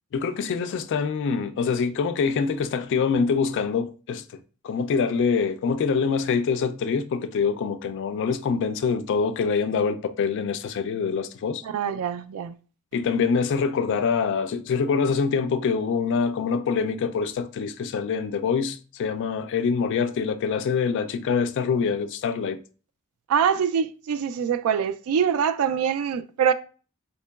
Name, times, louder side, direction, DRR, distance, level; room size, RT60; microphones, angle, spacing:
voice 1, 0.1-11.6 12.9-22.6, left 5 dB, 55° left, 0.3 m, -25 dB
voice 2, 11.6-12.5 23.3-26.5, right 7 dB, 75° right, 0.3 m, -24 dB
3.7 x 2.9 x 2.2 m
head